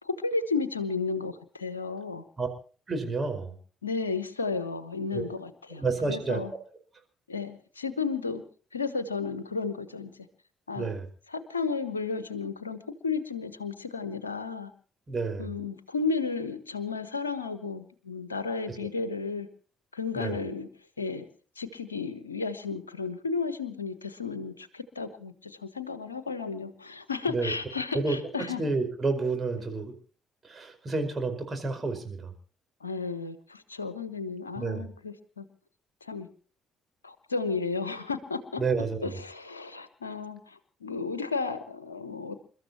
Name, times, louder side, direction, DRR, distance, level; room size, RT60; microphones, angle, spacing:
voice 1, 0.0-2.2 3.8-5.8 6.1-6.5 7.3-8.4 8.7-10.1 10.7-10.9 11.3-14.7 15.4-19.5 19.9-20.7 21.0-21.3 21.6-28.6 32.8-35.4 36.0-36.3 37.0-38.6 39.0-42.4, left 4 dB, 85° left, 13 dB, 1.1 m, -33 dB
voice 2, 2.9-3.6 5.1-5.3 5.7-6.4 10.7-11.1 15.1-15.5 18.8-18.9 20.1-20.4 27.3-27.5 27.9-29.9 30.4-32.3 34.5-34.9 38.6-39.1, right 3 dB, 30° right, 5 dB, 5.0 m, -30 dB
28.5 x 13.5 x 3.0 m, 0.41 s
figure-of-eight pair, 45°, 0 cm